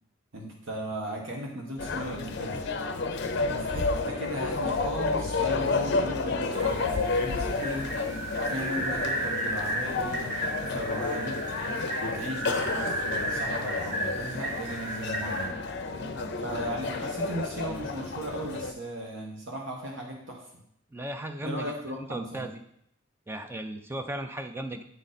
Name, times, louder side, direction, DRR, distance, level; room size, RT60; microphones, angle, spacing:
voice 1, 0.3-2.6 3.5-7.9 8.5-11.4 12.0-15.5 16.4-20.6 21.4-22.5, right 1 dB, 75° right, -1 dB, 1.2 m, -37 dB
sound 1, 1.8-18.7, left 3 dB, 60° left, 0.6 m, -31 dB
sound 2, 6.5-15.5, right 1 dB, 50° right, 2.3 m, -34 dB
voice 2, 20.9-22.5 23.3-24.8, right 1 dB, 10° right, 6 dB, 0.5 m, -36 dB
9.1 x 3.8 x 4.1 m, 0.72 s
head